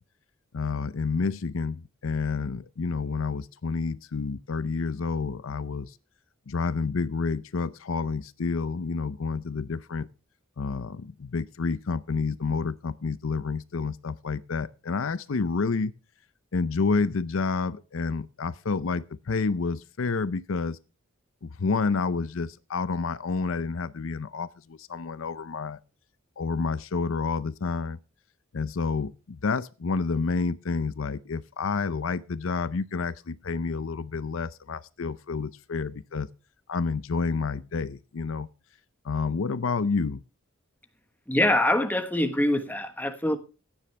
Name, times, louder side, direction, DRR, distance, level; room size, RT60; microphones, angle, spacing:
voice 1, 0.5-5.9 6.5-10.1 10.6-15.9 16.5-20.8 21.4-25.8 26.4-28.0 28.5-36.3 36.7-38.5 39.0-40.2, left 4 dB, 70° left, 0.6 m, -29 dB
voice 2, 41.3-43.4, left 1 dB, 10° left, 1.2 m, -24 dB
15.5 x 9.8 x 3.3 m
head